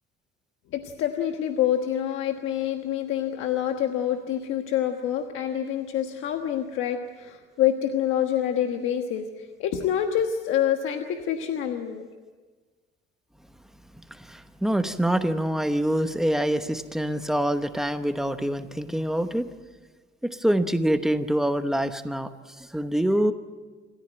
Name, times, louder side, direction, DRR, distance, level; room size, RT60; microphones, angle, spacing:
voice 1, 0.7-9.3 9.6-12.1, left 10 dB, 90° left, 5 dB, 1.3 m, -26 dB
voice 2, 14.1-19.5 20.2-23.3, right 1 dB, ahead, 8 dB, 1.0 m, -25 dB
27.5 x 14.5 x 9.0 m, 1.4 s
cardioid pair, 150°, 20 cm